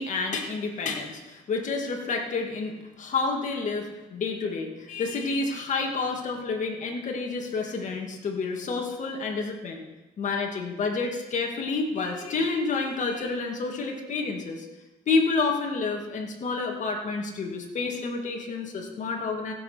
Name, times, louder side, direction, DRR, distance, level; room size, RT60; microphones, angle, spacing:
voice 1, 0.0-9.8 10.2-14.7 15.1-19.5, left 4 dB, 45° left, 2 dB, 2.5 m, -29 dB
15.5 x 7.5 x 5.9 m, 1.1 s
cardioid pair, 110°, 17 cm